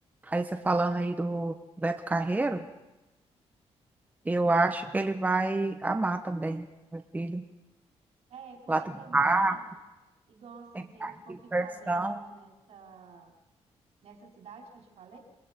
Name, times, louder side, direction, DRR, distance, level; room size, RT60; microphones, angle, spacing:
voice 1, 0.2-1.5 1.8-2.6 4.2-7.4 8.7-8.8 9.1-9.5 11.0-11.1 11.5-12.2, right 2 dB, 15° right, 5 dB, 1.1 m, -28 dB
voice 2, 8.3-9.6 10.3-13.3 14.0-15.2, right 5 dB, 75° right, 0 dB, 4.9 m, -50 dB
28.0 x 20.5 x 5.3 m, 1.0 s
cardioid pair, 115°, 11 cm